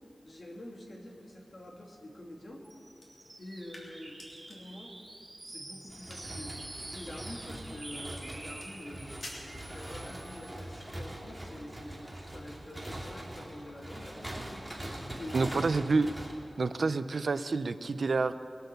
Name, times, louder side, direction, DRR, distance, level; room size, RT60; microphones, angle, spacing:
voice 1, 0.2-2.6 3.4-4.9 5.4-9.2 9.7-14.7 15.1-15.8, left 1 dB, 50° left, -1 dB, 2.5 m, -46 dB
sound 1, 2.6-10.6, right 2 dB, 40° right, 2.4 m, -47 dB
sound 2, 3.0-10.3, left 1 dB, 70° left, 3.3 m, -54 dB
sound 3, 5.9-16.3, right 1 dB, 15° right, 2.7 m, -43 dB
voice 2, 15.3-16.1 16.6-18.3, right 3 dB, 80° right, 12 dB, 0.5 m, -28 dB
22.0 x 7.9 x 6.9 m, 2.6 s
wide cardioid pair, 80°, 0 cm